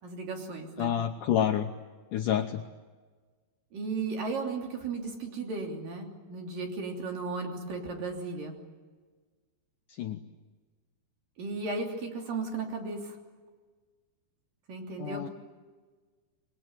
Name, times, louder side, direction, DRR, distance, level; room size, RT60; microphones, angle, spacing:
voice 1, 0.0-0.9 3.7-8.6 11.4-13.2 14.7-15.2, right 3 dB, 55° right, 2 dB, 4.6 m, -35 dB
voice 2, 0.8-1.7 2.1-2.6 10.0-10.2 15.0-15.3, left 10 dB, 90° left, 5 dB, 1.8 m, -28 dB
27.5 x 22.5 x 9.1 m, 1.4 s
omnidirectional pair, 5.0 m